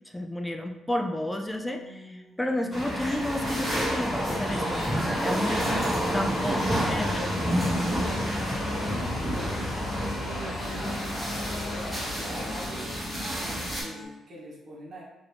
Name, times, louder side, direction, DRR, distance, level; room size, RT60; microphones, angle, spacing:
voice 1, 0.1-7.3, left 1 dB, 10° left, 4 dB, 0.3 m, -31 dB
sound 1, 1.4-14.1, left 1 dB, 35° left, 0.8 m, -43 dB
sound 2, 2.7-13.8, equal, 15° right, 1.2 m, -29 dB
sound 3, 3.4-12.7, left 1 dB, 80° left, 0.9 m, -38 dB
voice 2, 6.6-13.1 13.3-15.0, right 1 dB, 55° right, -5 dB, 1.1 m, -43 dB
2.9 x 2.5 x 3.3 m, 1.0 s
cardioid pair, 90°, 0 cm